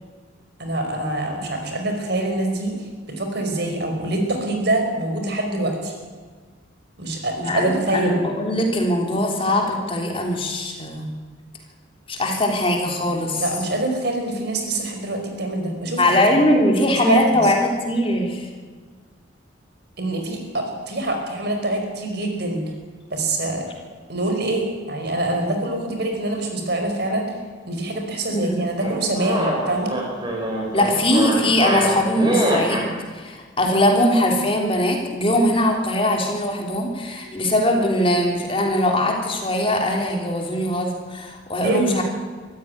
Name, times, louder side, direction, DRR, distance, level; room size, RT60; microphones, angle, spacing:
voice 1, 0.6-5.9 7.0-8.2 13.4-16.0 17.0-17.5 20.0-22.6 23.1-23.6 24.1-27.3 27.7-29.9 37.2-37.4 41.6-42.0, right 2 dB, 55° right, 4 dB, 5.1 m, -25 dB
voice 2, 7.4-11.1 12.1-13.4 16.0-18.5 28.3-28.6 30.7-42.0, left 1 dB, 25° left, 2 dB, 3.3 m, -21 dB
sound 1, 28.8-32.9, right 1 dB, 20° right, 6.0 m, -24 dB
24.5 x 14.5 x 9.7 m, 1.5 s
head